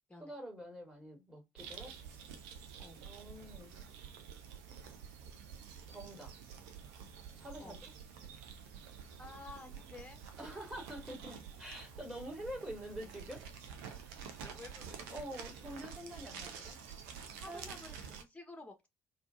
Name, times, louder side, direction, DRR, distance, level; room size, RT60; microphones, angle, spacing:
voice 1, 0.2-1.9 3.0-3.8 5.9-6.3 7.3-7.9 10.4-13.5 13.8-14.2 15.1-16.8 17.3-17.7, equal, 15° right, 2.5 m, -46 dB
sound 1, 1.6-18.2, right 7 dB, 70° right, 0.6 m, -49 dB
voice 2, 9.2-10.2 14.4-15.2 17.4-18.9, left 3 dB, 15° left, 1.3 m, -51 dB
4.2 x 2.8 x 2.6 m
figure-of-eight pair, 50°, 8 cm